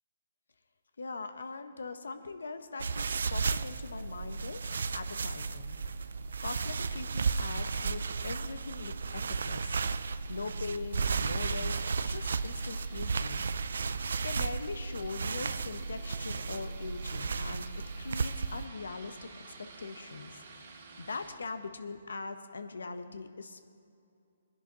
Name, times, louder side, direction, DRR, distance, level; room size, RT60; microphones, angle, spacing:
voice 1, 1.0-9.8 10.3-13.4 13.9-17.6 18.0-23.6, left 4 dB, 85° left, 9 dB, 0.8 m, -42 dB
sound 1, 2.8-18.7, right 4 dB, 75° right, 0.4 m, -34 dB
sound 2, 4.5-21.4, right 3 dB, 55° right, 2.3 m, -53 dB
21.5 x 10.5 x 2.9 m, 2.5 s
hypercardioid pair, 145°, 0 cm